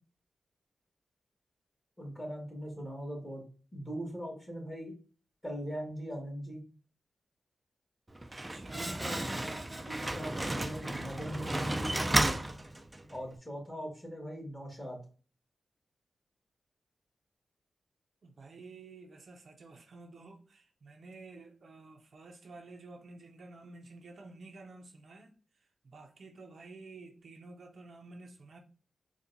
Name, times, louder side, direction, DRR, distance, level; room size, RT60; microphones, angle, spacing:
voice 1, 2.0-3.4 3.7-4.9 5.4-6.6 8.7-9.5 9.9-12.0 13.1-15.0, equal, 15° left, 1.8 m, -40 dB
Slam, 8.1-13.2, right 1 dB, 20° right, 0.4 m, -33 dB
voice 2, 8.3-8.9 18.2-28.6, right 3 dB, 65° right, 0.6 m, -51 dB
4.4 x 2.2 x 2.6 m
cardioid pair, 65°, 0 cm